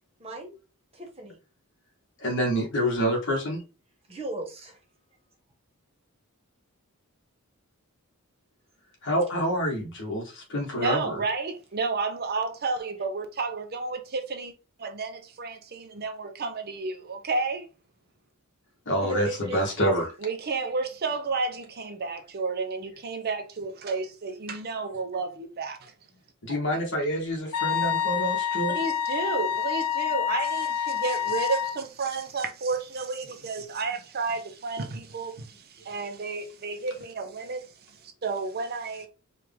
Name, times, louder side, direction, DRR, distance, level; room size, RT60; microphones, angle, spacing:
voice 1, 0.2-0.6 0.9-1.4 4.1-4.8 19.0-20.0 25.8-25.9, right 1 dB, 25° right, 1.0 m, -37 dB
voice 2, 2.2-3.6 9.0-11.2 18.9-20.1 26.4-28.8, equal, 55° left, 1.4 m, -27 dB
voice 3, 10.8-14.5 14.8-17.7 20.2-25.9 28.7-37.7 38.0-39.1, right 4 dB, 45° right, 0.6 m, -31 dB
Wind instrument woodwind instrument, 27.5-31.8, left 9 dB, 85° left, 1.0 m, -27 dB
4.6 x 2.4 x 3.4 m
head